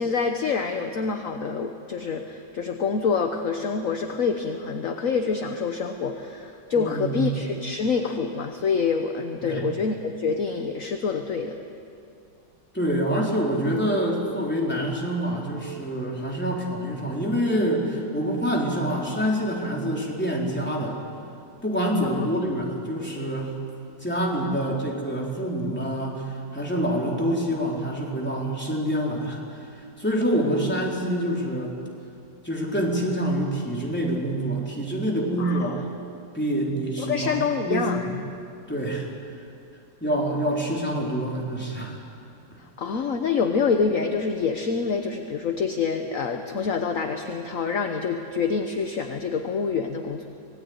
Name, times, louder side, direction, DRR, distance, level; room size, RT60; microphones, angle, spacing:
voice 1, 0.0-11.6 22.0-22.2 35.4-35.8 37.0-38.0 42.8-50.3, left 5 dB, 55° left, 5 dB, 1.4 m, -26 dB
voice 2, 6.8-7.4 9.4-9.7 12.7-21.0 21.6-23.6 24.0-29.4 29.7-31.7 32.4-35.8 36.3-37.4 37.7-38.1 38.7-39.1 40.0-42.0 42.5-42.6, right 1 dB, 5° left, -3 dB, 3.9 m, -26 dB
25.5 x 19.0 x 9.6 m, 2.5 s
omnidirectional pair, 1.9 m